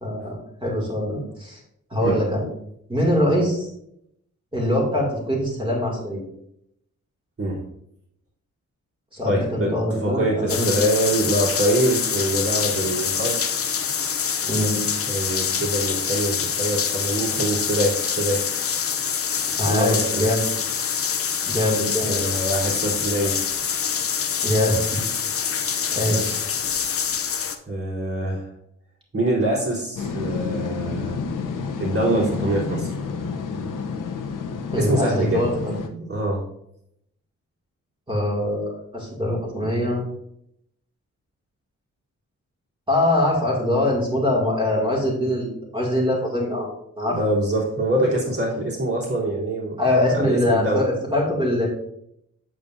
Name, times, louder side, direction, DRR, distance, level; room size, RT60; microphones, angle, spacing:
voice 1, 0.0-1.6 1.9-2.5 2.9-3.7 4.5-6.2 9.1-10.7 14.5-14.8 19.6-20.5 21.5-22.3 24.4-25.0 25.4-25.5 25.9-26.4 34.7-35.8 38.1-40.0 42.9-46.7 47.0-47.2 49.8-51.7, left 1 dB, 15° right, -2 dB, 2.4 m, -23 dB
voice 2, 9.2-13.4 15.1-18.4 19.6-20.3 22.0-23.4 26.1-26.2 27.7-28.5 29.1-31.2 31.8-32.9 34.8-35.4 35.8-36.4 47.1-49.8 50.1-50.8, right 1 dB, 45° right, -6 dB, 3.3 m, -24 dB
sound 1, 10.5-27.6, left 7 dB, 45° left, 0.6 m, -25 dB
sound 2, 30.0-35.9, left 5 dB, 85° left, 0.8 m, -30 dB
8.5 x 7.5 x 2.6 m, 0.75 s
wide cardioid pair, 155°, 31 cm